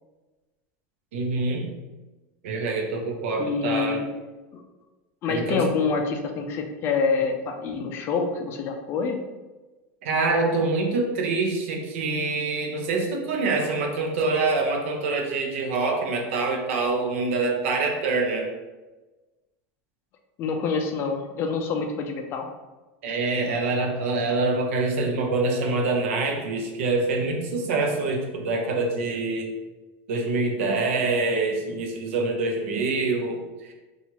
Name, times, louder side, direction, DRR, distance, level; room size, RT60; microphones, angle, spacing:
voice 1, 1.1-1.7 2.4-4.0 5.3-5.6 10.0-18.5 23.0-29.5 30.1-33.4 33.7-33.8, right 3 dB, 85° right, 2 dB, 0.6 m, -25 dB
voice 2, 3.4-4.1 4.5-4.6 5.2-9.2 20.4-22.5, left 5 dB, 35° left, 3 dB, 0.3 m, -26 dB
2.8 x 2.3 x 2.9 m, 1.2 s
supercardioid pair, 145°, 7 cm